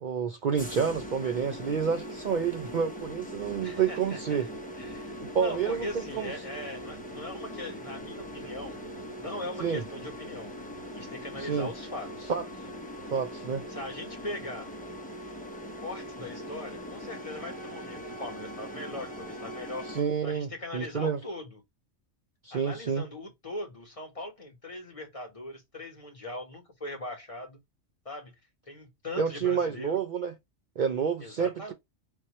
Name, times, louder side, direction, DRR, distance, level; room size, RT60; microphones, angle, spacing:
voice 1, 0.0-4.5 5.3-6.3 9.6-9.8 11.4-11.7 12.3-12.4 13.1-13.6 19.9-21.2 22.4-23.0 29.2-30.3 30.8-31.7, right 7 dB, 55° right, 0.6 m, -29 dB
sound 1, 0.6-20.0, equal, 10° left, 0.9 m, -41 dB
voice 2, 3.6-4.4 4.8-8.8 9.2-10.5 10.9-12.3 13.7-14.7 15.8-19.9 20.2-21.6 22.5-27.6 28.0-28.3 28.7-30.0 31.2-31.7, left 1 dB, 30° left, 1.3 m, -40 dB
5.3 x 2.8 x 3.0 m
omnidirectional pair, 1.2 m